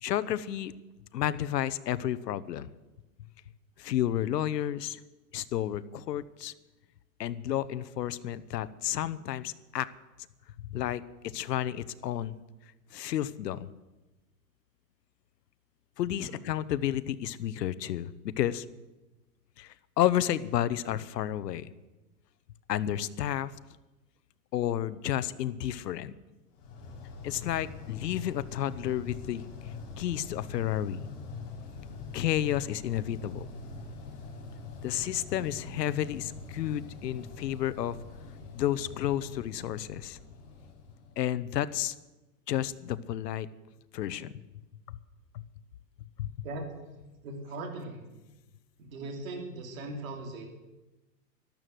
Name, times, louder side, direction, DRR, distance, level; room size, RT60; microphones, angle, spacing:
voice 1, 0.0-0.7 1.1-2.7 3.8-5.0 5.3-6.5 7.2-9.9 10.7-12.3 12.9-13.7 16.0-18.6 19.6-21.7 22.7-23.5 24.5-26.1 27.2-29.4 30.0-31.0 32.1-33.5 34.8-38.0 38.5-40.2 41.2-41.9 42.5-43.5 43.9-44.4 44.9-45.0 45.3-45.4 46.2-46.3, left 11 dB, 80° left, 15 dB, 1.0 m, -31 dB
sound 1, 26.6-41.6, left 4 dB, 35° left, 4.4 m, -44 dB
voice 2, 35.3-35.7 46.4-46.7 47.2-48.0 48.8-50.4, right 2 dB, 55° right, 2 dB, 3.0 m, -39 dB
13.0 x 12.0 x 7.7 m, 1.1 s
supercardioid pair, 165°, 48 cm